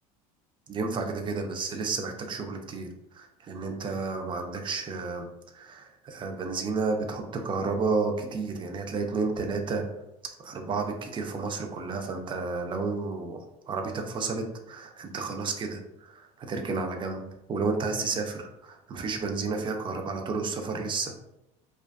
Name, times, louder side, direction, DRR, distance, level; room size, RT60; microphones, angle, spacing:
voice 1, 0.7-2.9 3.1-9.9 10.4-13.4 13.7-17.2 17.5-21.1, right 4 dB, 25° right, 4 dB, 0.4 m, -31 dB
2.4 x 2.2 x 2.3 m, 0.90 s
supercardioid pair, 90°, 18 cm